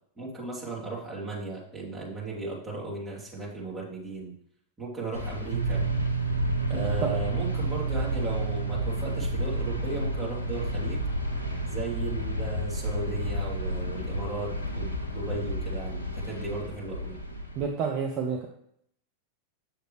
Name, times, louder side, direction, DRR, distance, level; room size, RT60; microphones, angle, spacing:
voice 1, 0.2-4.3 4.8-5.9 6.7-11.0 11.7-17.2, right 3 dB, 15° right, -6 dB, 2.7 m, -36 dB
sound 1, 5.1-17.6, left 1 dB, 80° left, 0.9 m, -32 dB
sound 2, 5.5-15.5, right 8 dB, 75° right, 0.3 m, -34 dB
sound 3, 8.5-16.3, left 8 dB, 55° left, 0.6 m, -48 dB
voice 2, 17.6-18.5, right 6 dB, 40° right, 2 dB, 0.8 m, -29 dB
8.0 x 6.6 x 3.2 m, 0.70 s
figure-of-eight pair, 90°, 0 cm